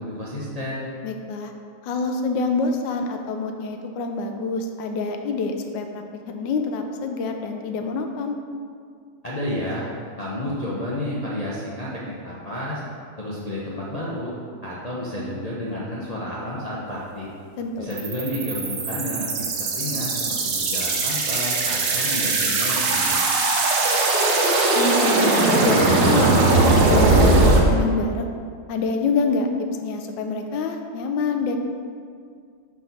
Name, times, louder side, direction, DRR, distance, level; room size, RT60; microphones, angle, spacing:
voice 1, 0.0-0.9 9.2-9.9 10.2-12.8 13.2-14.3 14.6-17.3 17.8-19.3 19.6-23.2, left 1 dB, 55° left, -7 dB, 0.4 m, -31 dB
voice 2, 1.0-1.5 1.8-8.4 17.6-17.9 24.4-28.3 28.7-29.5 29.8-31.6, left 3 dB, 85° left, 4 dB, 1.3 m, -26 dB
sound 1, 17.9-27.6, right 3 dB, 80° right, 1.5 m, -20 dB
4.8 x 4.0 x 5.8 m, 2.2 s
omnidirectional pair, 1.9 m